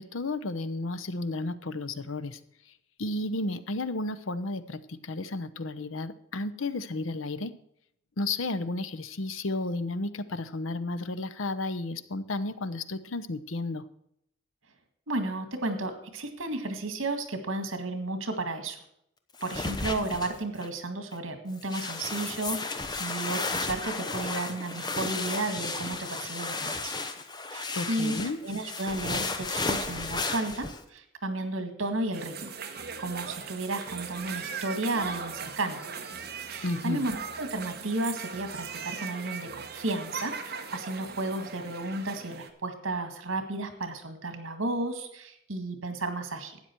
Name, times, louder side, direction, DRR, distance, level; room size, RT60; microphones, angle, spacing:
voice 1, 0.0-2.4 3.0-7.5 8.2-13.8 27.7-28.4 36.6-37.0, left 2 dB, 80° left, 13 dB, 0.8 m, -32 dB
voice 2, 15.1-18.8 19.4-26.9 27.5-28.2 28.4-32.5 33.0-35.8 36.5-46.6, right 2 dB, 80° right, 8 dB, 1.9 m, -33 dB
sound 1, 19.4-20.7 21.1-21.2 21.6-30.8, left 3 dB, 20° left, 0.8 m, -33 dB
sound 2, 32.1-42.5, right 5 dB, 50° right, 1.2 m, -39 dB
12.5 x 8.9 x 4.5 m, 0.74 s
head